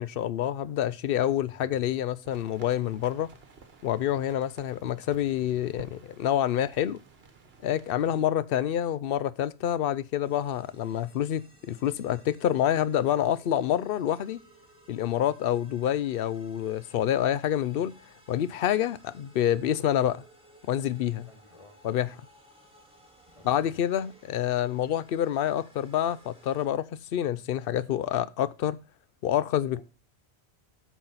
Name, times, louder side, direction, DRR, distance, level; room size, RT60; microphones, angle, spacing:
voice 1, 0.0-3.3 3.8-7.0 7.6-14.4 14.9-18.0 18.3-20.2 20.7-21.3 21.8-22.1 23.4-28.8 29.2-29.8, left 11 dB, 65° left, 0.7 m, -27 dB
sound 1, 2.3-8.2, right 4 dB, 65° right, 1.4 m, -53 dB
sound 2, 10.2-26.6, right 1 dB, 5° right, 2.0 m, -58 dB
voice 2, 21.3-21.8 23.3-23.8 29.7-29.8, left 2 dB, 30° left, 1.3 m, -54 dB
8.8 x 6.2 x 3.9 m
omnidirectional pair, 1.1 m